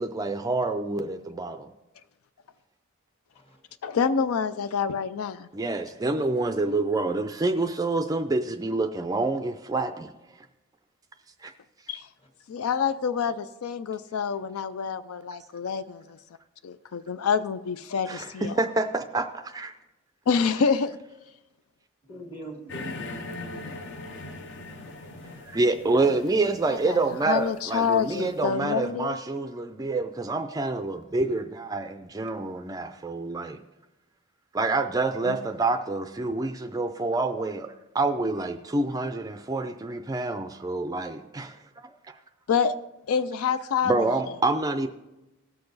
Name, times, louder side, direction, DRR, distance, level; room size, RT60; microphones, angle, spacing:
voice 1, 0.0-1.7 5.5-10.1 11.4-11.5 18.1-19.7 25.4-33.6 34.5-42.2 43.9-44.9, right 3 dB, 15° right, 8 dB, 0.3 m, -27 dB
voice 2, 3.8-5.5 11.9-12.1 12.5-16.2 16.6-18.6 20.3-21.0 26.8-27.0 27.3-29.2 35.3-35.4 42.5-42.7 43.1-44.1, left 6 dB, 85° left, 13 dB, 0.4 m, -27 dB
voice 3, 22.1-25.6, right 1 dB, 25° left, 3 dB, 1.5 m, -44 dB
sound 1, 22.7-28.3, left 2 dB, 55° left, 0.8 m, -41 dB
17.5 x 6.7 x 4.0 m, 1.0 s
head